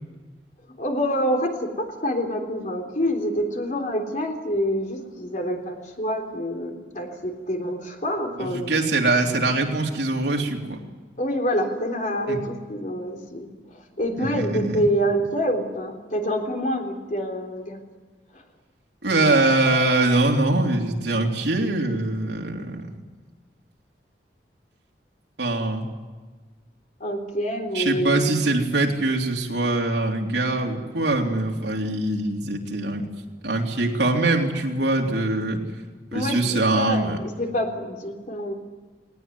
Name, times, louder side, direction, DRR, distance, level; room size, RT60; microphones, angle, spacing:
voice 1, 0.8-8.9 11.2-17.8 18.3-18.4 27.0-28.4 36.1-38.5, equal, 45° left, 3 dB, 3.6 m, -27 dB
voice 2, 8.4-10.8 12.3-12.4 14.1-14.8 19.0-22.9 25.4-25.9 27.7-33.1 33.4-35.6 36.1-37.2, right 2 dB, 80° right, 1 dB, 3.4 m, -23 dB
19.5 x 19.0 x 9.4 m, 1.3 s
head